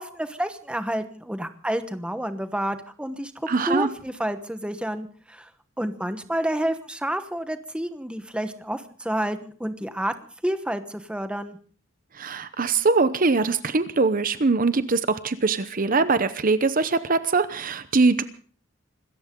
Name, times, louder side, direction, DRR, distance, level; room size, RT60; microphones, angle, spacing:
voice 1, 0.0-5.5 5.8-10.1 10.4-11.6, right 1 dB, 5° right, 9 dB, 1.1 m, -29 dB
voice 2, 3.5-3.9 12.1-18.2, right 3 dB, 45° right, 13 dB, 0.8 m, -22 dB
26.0 x 14.5 x 3.8 m, 0.43 s
head